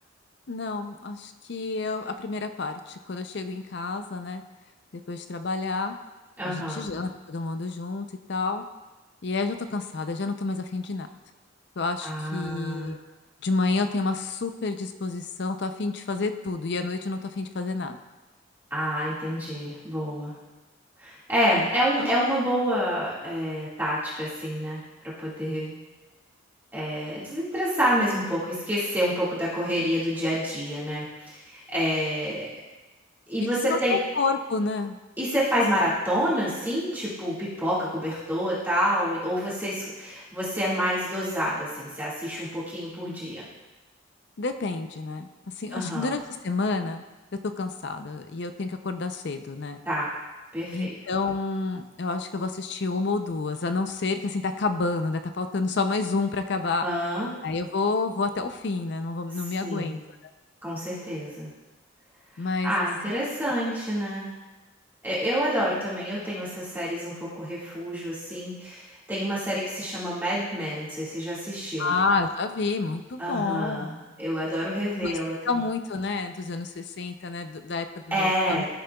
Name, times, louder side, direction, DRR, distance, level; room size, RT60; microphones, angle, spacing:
voice 1, 0.5-4.4 5.1-5.9 6.4-8.6 9.2-11.1 11.8-13.0 13.4-18.0 21.5-21.7 22.0-22.1 33.4-35.0 44.4-45.3 45.6-47.0 47.4-49.8 50.7-56.9 57.4-60.0 62.4-62.9 71.8-73.9 75.0-75.1 75.5-78.6, left 3 dB, 55° left, 8 dB, 0.5 m, -29 dB
voice 2, 6.4-6.9 12.0-13.0 18.7-20.3 21.0-25.8 26.7-32.5 33.3-34.0 35.2-43.4 45.7-46.1 49.9-50.1 50.5-50.9 56.8-57.3 59.6-60.0 60.6-61.5 62.6-64.3 65.0-68.8 69.1-71.9 73.2-75.4 78.1-78.6, equal, 10° right, -9 dB, 1.9 m, -28 dB
13.0 x 6.7 x 2.3 m, 1.1 s
head